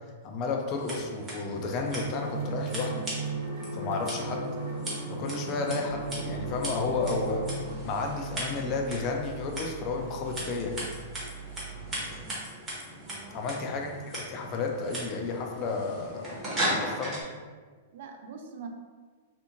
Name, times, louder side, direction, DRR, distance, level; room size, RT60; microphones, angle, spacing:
voice 1, 0.2-3.0 3.7-4.5 5.2-7.5 7.8-10.9 13.3-16.4 16.7-17.2, left 3 dB, 30° left, 2 dB, 0.3 m, -32 dB
Scissors, 0.7-17.2, right 1 dB, 15° right, 0.7 m, -38 dB
sound 1, 1.5-7.8, right 2 dB, 70° right, 0.8 m, -36 dB
sound 2, 5.9-12.2, right 8 dB, 80° left, 0.7 m, -44 dB
voice 2, 13.1-13.5 17.9-18.7, right 6 dB, 55° right, 4 dB, 0.4 m, -44 dB
2.5 x 2.5 x 2.8 m, 1.5 s
supercardioid pair, 165°, 0 cm